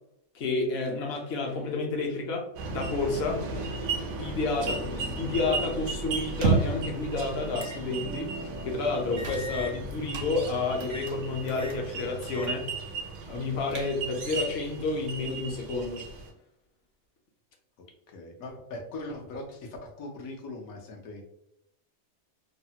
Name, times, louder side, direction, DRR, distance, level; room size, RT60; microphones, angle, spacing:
voice 1, 0.3-3.4 4.2-8.3 8.7-12.7 13.3-16.0, left 3 dB, 60° left, 2 dB, 0.7 m, -30 dB
sound 1, 2.6-16.3, right 3 dB, 80° right, 1.0 m, -36 dB
sound 2, 4.3-9.3, equal, 20° right, 0.4 m, -44 dB
sound 3, 6.3-6.9 7.6-7.8 8.2-8.3 9.2-10.3 10.8-11.2 11.5-11.8 12.2-12.5 12.9-13.0 13.4-14.2, right 4 dB, 65° right, 0.7 m, -30 dB
voice 2, 18.1-21.2, left 2 dB, 80° left, 2 dB, 1.1 m, -40 dB
3.1 x 2.0 x 2.7 m, 0.79 s
omnidirectional pair, 1.5 m